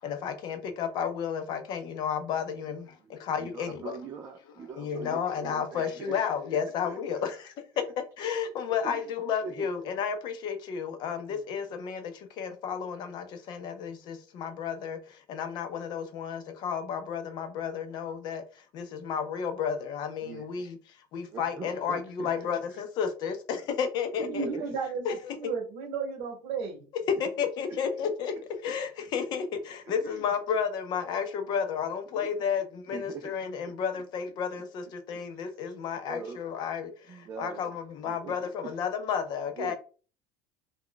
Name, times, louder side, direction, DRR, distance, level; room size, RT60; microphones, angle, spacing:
voice 1, 0.0-3.9 4.8-7.8 8.2-20.8 21.1-24.5 25.0-25.4 27.2-28.3 28.6-39.7, left 7 dB, 45° left, 0.5 m, -32 dB
voice 2, 3.0-6.2 6.8-7.2 8.7-9.1 9.4-9.7 11.3-11.4 19.4-19.5 20.2-20.5 21.3-22.5 24.2-24.8 27.4-28.1 29.8-30.2 32.1-32.4 32.9-33.3 33.7-34.0 35.1-35.2 35.5-35.6 36.1-36.4 37.1-37.7 38.0-38.8 39.6-39.7, right 5 dB, 25° right, 0.3 m, -43 dB
voice 3, 24.3-26.9, right 5 dB, 65° right, 0.9 m, -34 dB
2.3 x 2.1 x 3.7 m
cardioid pair, 145°, 10 cm